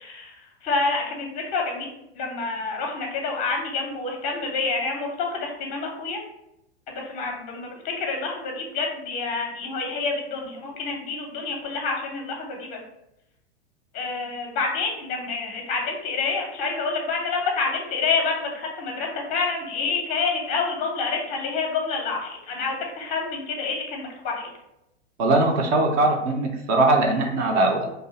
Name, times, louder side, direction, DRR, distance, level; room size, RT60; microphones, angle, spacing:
voice 1, 0.0-1.9 2.1-6.2 6.9-12.8 13.9-24.5, left 4 dB, 25° left, 1 dB, 0.6 m, -28 dB
voice 2, 25.2-27.9, right 2 dB, 35° right, 2 dB, 0.4 m, -20 dB
2.4 x 2.3 x 2.7 m, 0.85 s
figure-of-eight pair, 100°, 34 cm